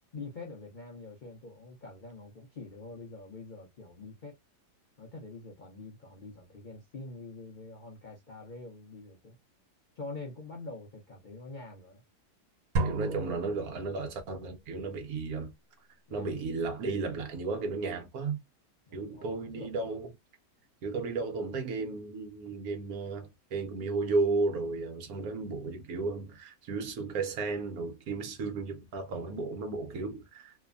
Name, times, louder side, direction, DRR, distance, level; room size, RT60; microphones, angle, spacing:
voice 1, 0.1-4.4 5.0-9.4 10.0-12.0 16.1-16.3 18.9-19.8, left 3 dB, 60° left, 0.5 m, -45 dB
voice 2, 12.8-15.5 16.1-18.4 18.9-20.1 20.8-30.5, right 3 dB, 70° right, 1.1 m, -34 dB
sound 1, 12.8-14.4, right 2 dB, 90° right, 1.3 m, -33 dB
3.0 x 2.1 x 2.4 m
omnidirectional pair, 1.8 m